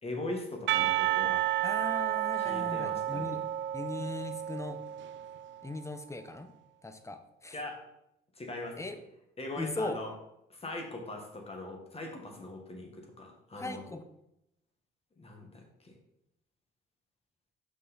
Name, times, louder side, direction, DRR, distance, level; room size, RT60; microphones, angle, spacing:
voice 1, 0.0-1.4 2.4-3.3 7.5-7.8 8.3-8.9 9.4-10.1 10.5-13.8 15.2-15.9, left 2 dB, 30° left, 2 dB, 1.7 m, -41 dB
Percussion, 0.7-5.5, right 13 dB, 70° right, 0.4 m, -31 dB
voice 2, 1.6-3.4 3.7-4.8 5.6-6.5 6.8-7.6 8.8-9.0 9.6-10.0 13.6-14.0, left 2 dB, 15° left, 8 dB, 0.8 m, -38 dB
5.9 x 5.3 x 4.2 m, 0.82 s
cardioid pair, 90°, 20 cm